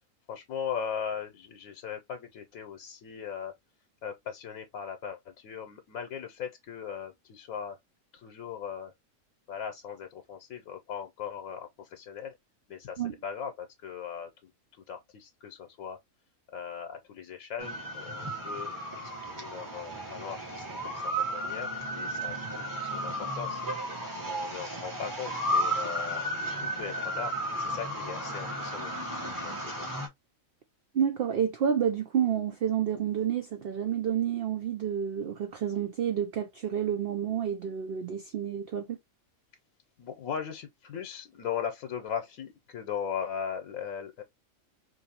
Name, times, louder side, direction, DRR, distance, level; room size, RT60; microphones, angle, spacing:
voice 1, 0.3-3.5 4.0-7.8 8.1-8.9 9.5-12.3 12.7-16.0 16.5-18.7 19.3-23.6 24.2-28.9 29.4-29.9 40.0-44.2, left 7 dB, 80° left, 1.1 m, -39 dB
sound 1, 17.6-30.1, equal, 15° right, 1.0 m, -34 dB
voice 2, 30.9-39.0, right 8 dB, 60° right, 0.6 m, -29 dB
4.6 x 2.6 x 2.8 m
omnidirectional pair, 1.4 m